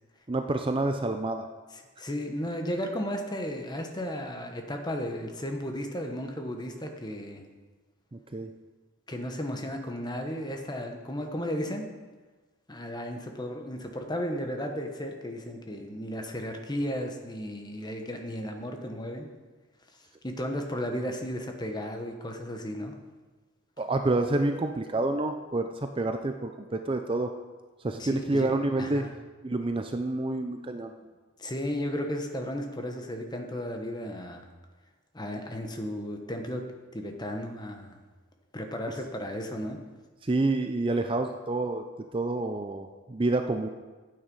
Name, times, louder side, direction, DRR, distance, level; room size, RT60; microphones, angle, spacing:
voice 1, 0.3-1.5 8.1-8.5 23.8-27.3 27.8-29.1 29.4-30.9 40.2-41.8 42.1-43.7, right 2 dB, 25° right, 6 dB, 0.5 m, -28 dB
voice 2, 1.7-7.5 9.1-11.9 12.7-19.3 20.2-23.0 28.0-29.1 31.4-34.4 35.1-36.6 36.9-38.0 38.5-39.8, equal, 20° left, 3 dB, 1.1 m, -34 dB
12.0 x 8.9 x 5.4 m, 1.3 s
head